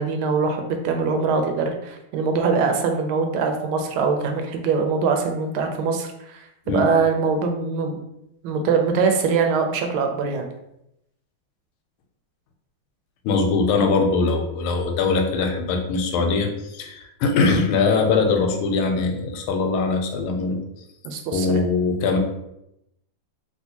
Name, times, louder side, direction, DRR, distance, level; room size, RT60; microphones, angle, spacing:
voice 1, 0.0-8.0 8.4-10.5 21.0-21.6, right 5 dB, 85° right, 4 dB, 1.4 m, -23 dB
voice 2, 13.2-20.6 21.3-22.2, left 4 dB, 90° left, 4 dB, 1.5 m, -21 dB
3.3 x 2.7 x 2.8 m, 0.83 s
omnidirectional pair, 2.3 m